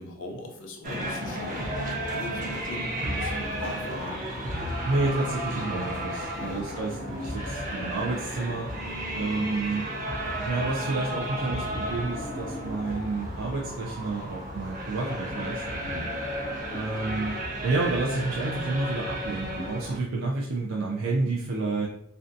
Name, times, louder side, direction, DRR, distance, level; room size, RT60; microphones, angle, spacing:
voice 1, 0.0-4.2 6.2-6.7 15.7-16.2, left 2 dB, 70° left, 3 dB, 0.5 m, -41 dB
sound 1, 0.8-20.0, equal, 40° right, 0.7 m, -33 dB
voice 2, 4.8-8.7 9.1-9.9 10.2-15.6 16.7-17.3 17.6-21.9, right 3 dB, 85° right, -3 dB, 0.4 m, -30 dB
2.5 x 2.2 x 2.6 m, 0.71 s
head